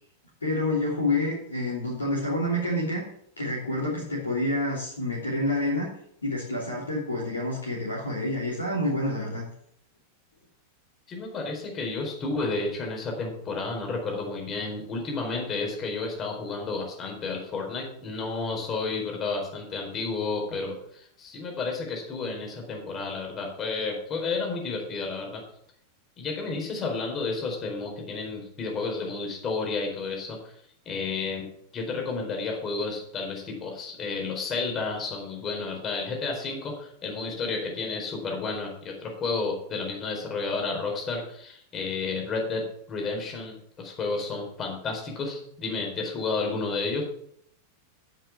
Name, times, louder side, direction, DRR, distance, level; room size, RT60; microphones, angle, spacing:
voice 1, 0.4-3.0 3.4-5.9 6.2-9.5, left 1 dB, 75° left, -4 dB, 3.1 m, -28 dB
voice 2, 11.1-25.4 26.2-30.5 30.8-31.5 31.7-47.0, left 4 dB, 25° left, 1 dB, 4.4 m, -31 dB
9.4 x 7.7 x 7.3 m, 0.68 s
figure-of-eight pair, 90°, 0 cm